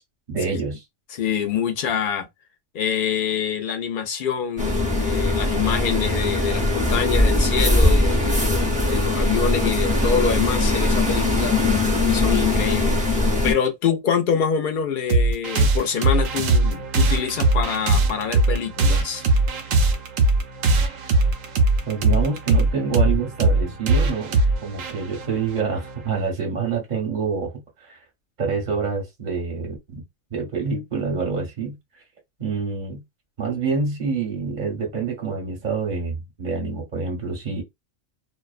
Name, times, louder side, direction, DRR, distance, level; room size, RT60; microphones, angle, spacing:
voice 1, 0.3-0.8 21.9-27.5 27.8-28.0 28.4-30.0 30.3-31.8 32.4-33.0 33.4-37.6, right 5 dB, 40° right, 0.7 m, -27 dB
voice 2, 1.1-2.3 2.7-11.5 12.1-13.0 13.4-19.2, left 7 dB, 70° left, 0.5 m, -25 dB
sound 1, 4.6-13.5, left 2 dB, 10° right, 0.4 m, -20 dB
sound 2, 15.1-26.2, right 2 dB, 75° right, 0.9 m, -20 dB
2.4 x 2.1 x 2.4 m
omnidirectional pair, 1.4 m